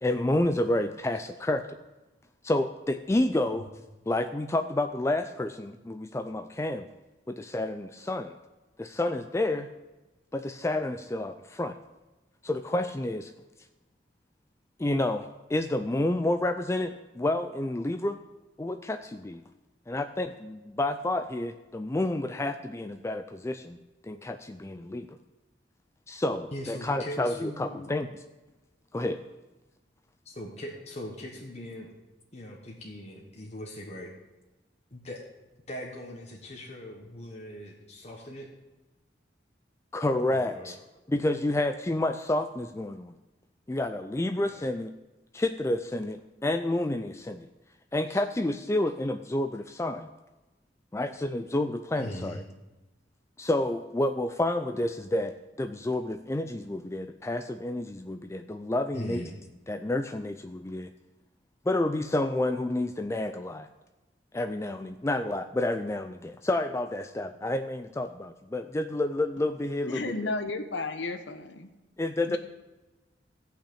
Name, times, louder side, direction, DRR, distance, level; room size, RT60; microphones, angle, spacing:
voice 1, 0.0-1.8 2.4-3.7 4.1-6.9 7.3-8.4 8.8-9.7 10.3-11.8 12.4-13.3 14.8-18.2 18.6-19.4 19.9-23.8 24.0-25.2 26.1-28.1 28.9-29.2 39.9-40.8 41.1-43.1 43.7-44.9 45.3-47.5 47.9-50.1 50.9-52.4 53.4-59.2 59.7-60.9 61.7-63.7 64.3-70.3 72.0-72.4, left 1 dB, 15° left, 8 dB, 0.4 m, -29 dB
voice 2, 26.5-27.9 30.2-31.9 32.3-34.1 34.9-35.2 35.7-38.5 40.2-40.8 44.4-44.7 48.1-48.2 52.0-52.4 58.9-59.3, left 1 dB, 35° left, -1 dB, 1.3 m, -40 dB
voice 3, 69.9-71.7 72.3-72.4, left 3 dB, 80° left, 8 dB, 1.1 m, -33 dB
14.5 x 5.8 x 8.5 m, 1.1 s
head